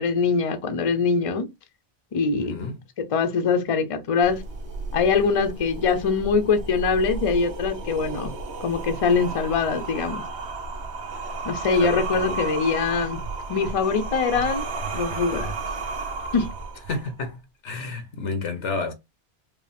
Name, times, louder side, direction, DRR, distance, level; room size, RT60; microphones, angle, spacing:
voice 1, 0.0-1.5 2.1-2.6 3.1-4.4 4.9-8.3 8.6-10.2 11.4-13.2 13.5-14.6 14.9-15.5 16.3-16.5, left 5 dB, 35° left, 0.6 m, -23 dB
voice 2, 2.3-2.8 11.7-12.4 16.9-17.4 17.6-18.9, left 4 dB, 80° left, 1.2 m, -30 dB
sound 1, 4.2-17.2, right 3 dB, 70° right, 1.1 m, -33 dB
5.1 x 2.0 x 3.4 m
omnidirectional pair, 1.2 m